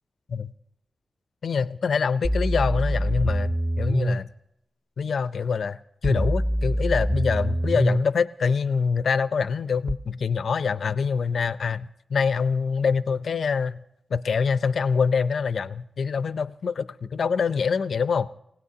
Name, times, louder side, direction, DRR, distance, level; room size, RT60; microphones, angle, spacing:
voice 1, 1.4-4.3 5.0-5.8 6.0-13.8 14.1-18.3, left 5 dB, 75° left, 13 dB, 0.5 m, -25 dB
sound 1, 2.2-4.2 6.0-8.0 9.9-10.0, equal, 10° right, 0.5 m, -24 dB
29.5 x 17.5 x 2.8 m, 0.80 s
wide cardioid pair, 95°, 0 cm